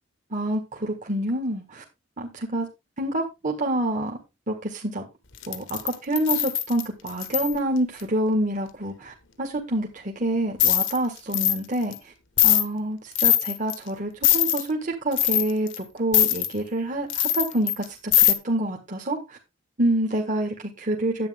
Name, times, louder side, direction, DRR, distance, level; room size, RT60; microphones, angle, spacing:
voice 1, 0.3-1.8 2.2-2.7 3.0-4.2 4.5-5.0 5.5-12.1 12.4-19.4 19.8-21.3, right 1 dB, 40° right, 1 dB, 1.8 m, -27 dB
sound 1, 5.4-7.5 10.6-11.0 11.3-11.6 11.9-12.0 12.4-12.7 13.2-13.8 14.2-14.7 15.1-15.8 16.1-16.5 17.1-17.8 18.1-18.3, left 12 dB, 65° left, 1.3 m, -21 dB
10.5 x 8.7 x 3.6 m, 0.25 s
head